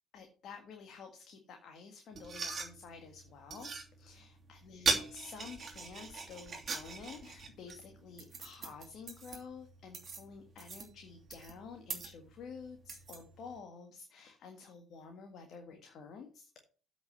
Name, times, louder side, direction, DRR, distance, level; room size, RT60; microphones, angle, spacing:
voice 1, 0.1-3.7 4.0-16.5, left 5 dB, 55° left, 5 dB, 1.8 m, -50 dB
sound 1, 2.1-13.6, right 4 dB, 40° right, 2.9 m, -41 dB
8.2 x 6.1 x 6.9 m, 0.39 s
hypercardioid pair, 60°, 0 cm